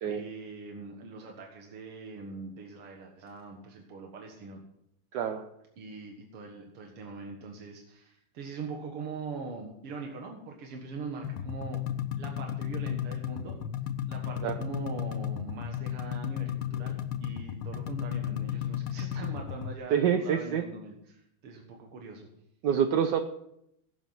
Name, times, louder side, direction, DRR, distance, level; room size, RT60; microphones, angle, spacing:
voice 1, 0.1-4.6 5.8-11.8 12.2-13.6 14.1-22.3, right 4 dB, 85° right, 1 dB, 2.5 m, -42 dB
voice 2, 5.1-5.4 14.4-14.5 19.9-20.6 22.6-23.2, right 8 dB, 65° right, 6 dB, 1.2 m, -26 dB
sound 1, 11.2-19.7, left 10 dB, 75° left, 1.6 m, -34 dB
16.0 x 8.3 x 5.9 m, 0.77 s
omnidirectional pair, 2.4 m